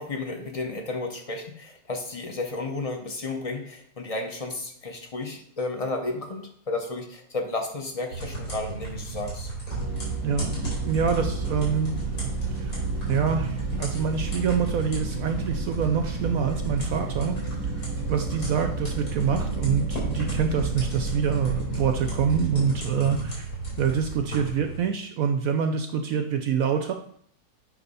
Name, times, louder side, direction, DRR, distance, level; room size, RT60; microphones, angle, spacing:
voice 1, 0.0-9.5, left 2 dB, 35° left, 4 dB, 0.5 m, -32 dB
sound 1, 8.1-24.8, right 3 dB, 60° left, 4.0 m, -35 dB
sound 2, 9.7-22.5, right 3 dB, 25° right, 1.0 m, -31 dB
voice 2, 10.8-11.9 12.5-12.8 13.1-17.4 18.0-23.5 23.8-26.9, right 7 dB, 70° right, 6 dB, 0.8 m, -26 dB
8.6 x 3.4 x 5.4 m, 0.63 s
omnidirectional pair, 1.9 m